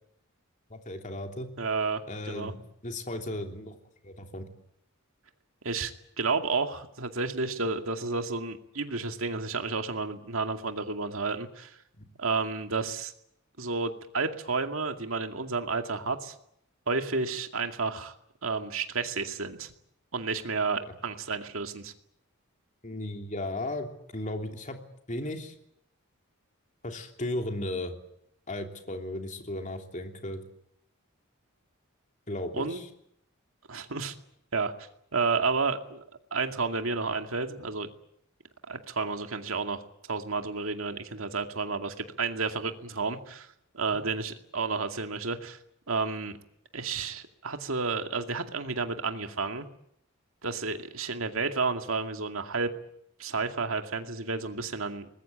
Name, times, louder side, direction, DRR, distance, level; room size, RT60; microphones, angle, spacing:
voice 1, 0.7-1.5 2.1-3.8 4.0-4.5 12.0-12.1 22.8-24.8 25.1-25.5 26.8-28.0 28.5-30.4 32.3-32.9, left 1 dB, 35° left, 4 dB, 3.2 m, -35 dB
voice 2, 1.6-2.0 2.3-2.5 5.6-5.9 6.2-11.8 12.2-13.1 13.6-16.3 16.9-18.1 18.4-19.7 20.1-21.9 32.5-32.8 33.7-34.1 34.5-34.7 35.1-36.0 36.3-37.9 38.7-39.8 40.1-43.5 43.7-45.6 45.9-46.4 46.7-49.7 50.4-52.7 53.2-55.1, right 4 dB, 65° right, 6 dB, 2.3 m, -31 dB
24.0 x 21.0 x 9.1 m, 0.74 s
head